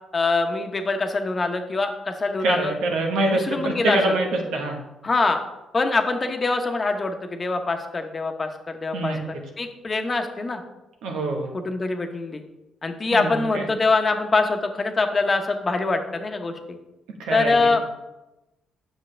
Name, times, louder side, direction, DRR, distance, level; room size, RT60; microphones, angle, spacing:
voice 1, 0.1-2.7 3.3-4.2 5.0-5.4 5.7-9.1 9.6-10.6 11.5-12.4 12.8-16.5 17.3-17.8, left 3 dB, 30° left, 5 dB, 0.9 m, -24 dB
voice 2, 2.4-4.8 8.9-9.4 11.0-11.5 13.1-13.7 17.2-17.8, right 2 dB, 90° right, 2 dB, 1.3 m, -25 dB
7.6 x 6.6 x 3.3 m, 0.97 s
cardioid pair, 90°, 0 cm